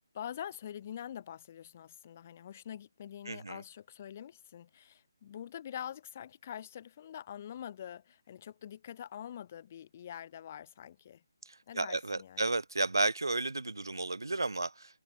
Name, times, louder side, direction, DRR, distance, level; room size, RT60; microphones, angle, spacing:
voice 1, 0.1-11.2 11.7-12.5, left 10 dB, 30° left, 1.9 m, -45 dB
voice 2, 3.3-3.6 11.5-15.0, right 2 dB, 90° right, 2.8 m, -33 dB
figure-of-eight pair, 165°, 2 cm